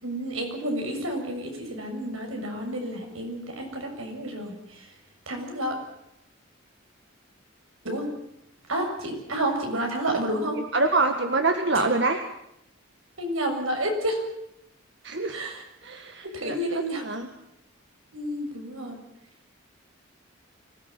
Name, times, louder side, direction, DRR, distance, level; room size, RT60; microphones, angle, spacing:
voice 1, 0.0-4.9 5.3-5.8 7.8-8.1 8.7-10.6 13.2-14.2 15.3-15.6 16.2-17.0 18.1-19.0, right 1 dB, 85° right, 3 dB, 6.9 m, -30 dB
voice 2, 10.7-12.2 15.0-15.4 15.8-17.3, right 3 dB, 55° right, 5 dB, 1.7 m, -25 dB
24.5 x 18.5 x 9.1 m, 0.81 s
head